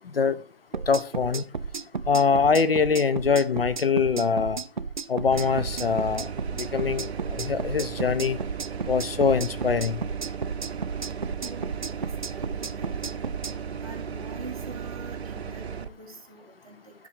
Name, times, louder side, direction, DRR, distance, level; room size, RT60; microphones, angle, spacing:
sound 1, 0.7-13.5, right 5 dB, 50° right, 0.4 m, -33 dB
voice 1, 0.9-1.4 2.1-4.6 5.1-6.3 6.6-8.4 8.9-10.0, left 5 dB, 65° left, 0.7 m, -23 dB
sound 2, 5.3-15.9, right 7 dB, 85° right, 0.7 m, -36 dB
voice 2, 11.4-13.2 13.8-16.9, right 3 dB, 35° right, 1.9 m, -45 dB
10.5 x 3.8 x 6.5 m
hypercardioid pair, 175°, 31 cm